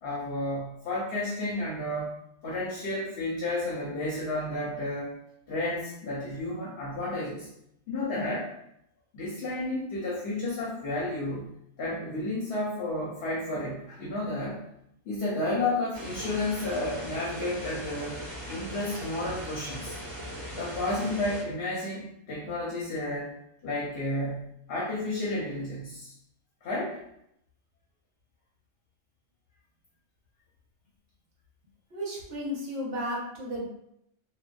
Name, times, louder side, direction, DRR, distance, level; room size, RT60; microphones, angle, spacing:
voice 1, 0.0-2.2 2.4-5.1 5.5-7.5 7.9-8.5 9.1-11.5 11.8-14.6 15.1-18.2 18.5-20.0 20.6-23.3 23.6-26.1 26.6-27.0, left 2 dB, 65° left, -5 dB, 0.8 m, -32 dB
sound 1, 15.9-21.4, equal, 20° right, 1.0 m, -39 dB
voice 2, 31.9-33.6, equal, 65° right, -3 dB, 1.0 m, -33 dB
2.4 x 2.2 x 2.2 m, 0.76 s
omnidirectional pair, 1.2 m